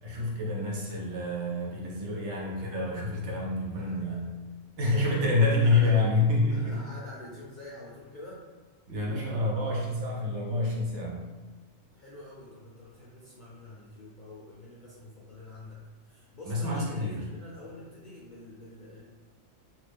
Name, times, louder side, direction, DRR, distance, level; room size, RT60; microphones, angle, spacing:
voice 1, 0.0-4.3 4.8-6.8 8.9-11.3 16.5-17.3, left 2 dB, 65° right, -2 dB, 0.9 m, -27 dB
voice 2, 3.7-4.2 4.8-5.1 5.5-5.9 6.5-8.4 11.9-19.0, left 1 dB, 60° left, -6 dB, 0.5 m, -47 dB
2.9 x 2.4 x 3.5 m, 1.3 s
omnidirectional pair, 1.4 m